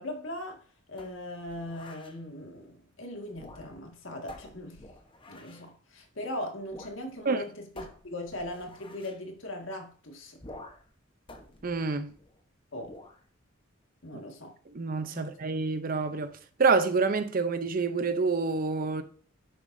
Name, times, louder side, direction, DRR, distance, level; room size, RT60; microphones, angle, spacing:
voice 1, 0.0-4.8 5.3-10.4 12.7-12.9 14.0-14.5 15.1-15.3, left 1 dB, 80° left, 2.0 m, -39 dB
sound 1, 1.0-2.2 3.3-3.9 4.3-5.7 6.7-7.0 7.3-7.4 7.8-9.2 10.4-10.9 11.3-12.4 12.8-13.2, left 1 dB, 25° left, 1.0 m, -49 dB
voice 2, 11.6-12.1 14.7-16.3 16.6-19.0, right 4 dB, 45° right, 0.6 m, -27 dB
10.0 x 6.9 x 2.7 m
head